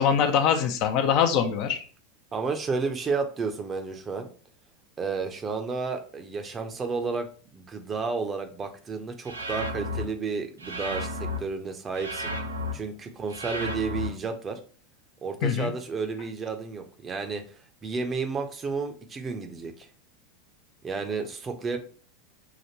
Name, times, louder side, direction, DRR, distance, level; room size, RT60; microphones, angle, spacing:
voice 1, 0.0-1.8 15.4-15.7, left 7 dB, 50° left, 7 dB, 0.6 m, -23 dB
voice 2, 2.3-4.3 5.0-12.3 12.7-14.6 15.2-17.4 17.8-19.9 20.8-21.8, right 4 dB, 25° right, 5 dB, 0.7 m, -32 dB
sound 1, 9.2-10.0 10.6-11.4 11.9-12.7 13.3-14.1, left 1 dB, 85° right, 0.6 m, -32 dB
5.8 x 2.5 x 2.9 m, 0.40 s
figure-of-eight pair, 85°, 0 cm